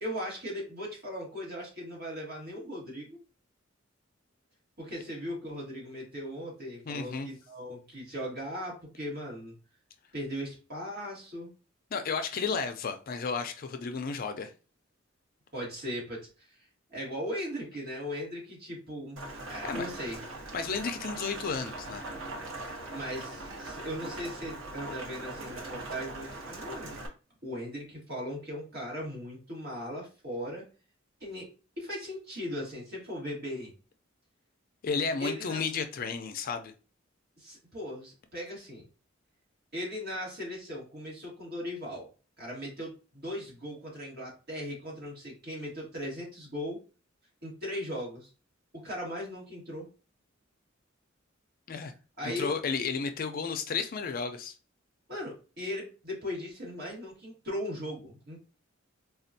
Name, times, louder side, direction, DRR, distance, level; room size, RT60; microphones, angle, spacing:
voice 1, 0.0-3.2 4.8-9.5 10.1-11.5 15.5-16.6 16.9-19.2 19.5-20.2 22.9-27.0 27.4-30.7 31.2-31.5 31.8-33.7 35.2-35.6 37.4-38.8 39.7-42.1 42.4-46.8 47.4-48.3 48.8-49.9 52.2-52.5 55.1-58.4, equal, 55° right, 1.7 m, -38 dB
voice 2, 6.9-7.3 11.9-14.5 19.6-19.8 20.5-22.1 34.8-36.7 51.7-51.9 52.2-54.5, left 5 dB, 45° left, 0.4 m, -32 dB
Rain, 19.2-27.1, right 2 dB, 80° right, 0.9 m, -41 dB
4.2 x 2.3 x 2.6 m
head